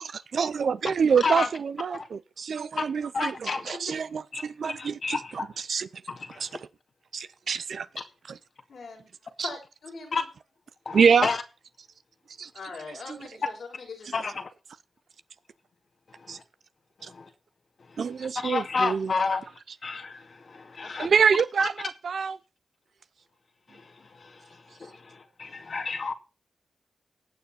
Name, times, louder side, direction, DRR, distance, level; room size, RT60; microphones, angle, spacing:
voice 1, 0.0-5.9 6.4-6.5 7.1-7.9 8.3-8.4 9.4-9.5 10.9-11.3 12.4-12.5 13.1-13.2 16.3-16.4 17.0-17.1 18.0-19.1 21.0-22.4, right 6 dB, 75° right, 0.5 m, -26 dB
voice 2, 3.1-3.7 4.3-5.3 6.1-6.4 8.0-8.1 10.1-10.2 10.9-11.4 14.1-14.5 17.2-17.3 18.4-19.4 19.8-20.2 20.5-21.1 21.6-21.7 24.8-24.9 25.4-26.1, left 4 dB, 65° left, 2.1 m, -29 dB
voice 3, 8.7-9.1 9.4-10.3 12.5-14.3 20.8-21.1, left 4 dB, 85° left, 5.9 m, -41 dB
18.5 x 6.7 x 4.3 m
cardioid pair, 45°, 0 cm